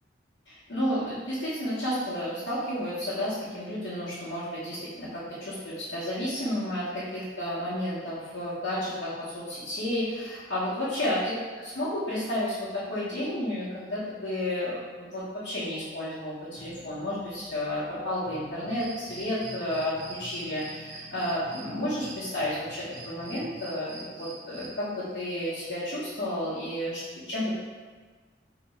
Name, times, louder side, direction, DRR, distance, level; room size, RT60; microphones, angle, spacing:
voice 1, 0.5-27.0 27.3-27.6, left 1 dB, 65° left, -13 dB, 1.1 m, -32 dB
sound 1, 16.6-23.6, left 1 dB, 35° left, 0.4 m, -50 dB
sound 2, 18.7-25.7, right 3 dB, 90° right, 0.9 m, -46 dB
3.4 x 2.9 x 4.1 m, 1.5 s
head